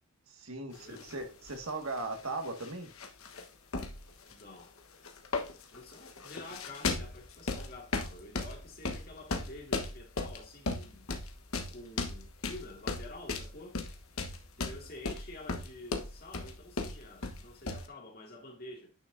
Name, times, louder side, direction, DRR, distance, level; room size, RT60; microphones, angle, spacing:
voice 1, 0.3-2.9, right 2 dB, 85° right, 1.8 m, -38 dB
sound 1, 0.8-1.1 1.5-2.7 3.0-3.4 3.7-4.6 5.0-17.9, left 3 dB, 90° left, 1.2 m, -36 dB
voice 2, 0.8-1.3 4.3-4.7 5.7-11.1 11.7-13.8 14.6-18.9, left 2 dB, 45° left, 2.3 m, -49 dB
9.8 x 6.2 x 2.6 m
head